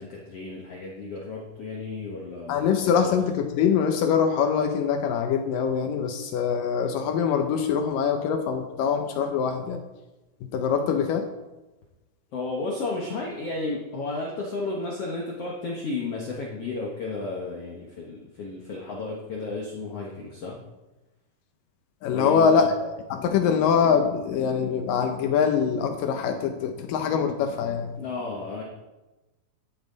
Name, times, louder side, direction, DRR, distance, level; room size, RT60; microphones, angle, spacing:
voice 1, 0.0-2.8 3.0-3.1 12.3-20.6 22.1-22.7 28.0-28.6, left 3 dB, 55° left, -2 dB, 2.0 m, -33 dB
voice 2, 2.5-9.8 10.4-11.3 22.0-27.9, left 6 dB, 75° left, 6 dB, 2.4 m, -24 dB
14.0 x 11.0 x 4.0 m, 1.1 s
omnidirectional pair, 4.1 m